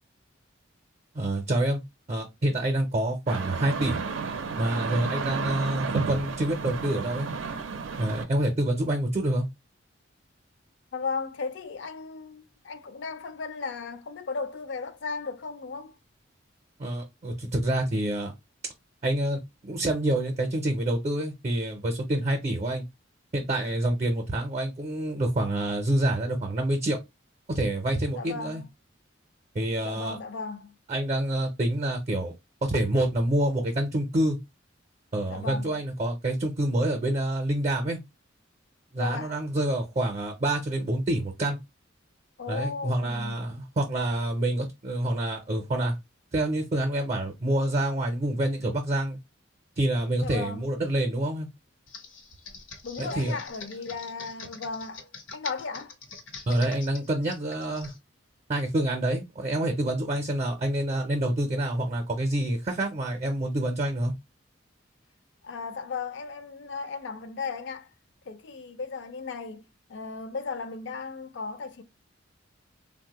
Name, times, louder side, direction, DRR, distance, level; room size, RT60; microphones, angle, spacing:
voice 1, 1.1-1.8 2.1-4.0 4.6-7.3 8.0-9.5 16.8-18.3 19.0-22.9 23.3-27.0 27.5-28.6 29.5-30.2 30.9-32.3 32.6-34.4 35.1-38.0 38.9-41.6 42.5-46.0 46.3-49.2 49.8-51.5 53.0-53.4 56.5-57.9 58.5-64.1, right 1 dB, 35° right, 0.5 m, -27 dB
sound 1, 3.3-8.2, right 4 dB, 85° right, 0.5 m, -32 dB
voice 2, 10.9-15.9 28.1-28.7 29.8-30.7 35.3-35.8 39.0-39.4 42.4-43.5 50.2-50.7 52.8-55.1 55.3-55.9 65.4-67.9 68.3-71.8, left 4 dB, 65° left, 0.4 m, -36 dB
Computer keyboard, 51.9-58.0, left 4 dB, 90° left, 0.8 m, -44 dB
3.3 x 2.1 x 2.8 m
head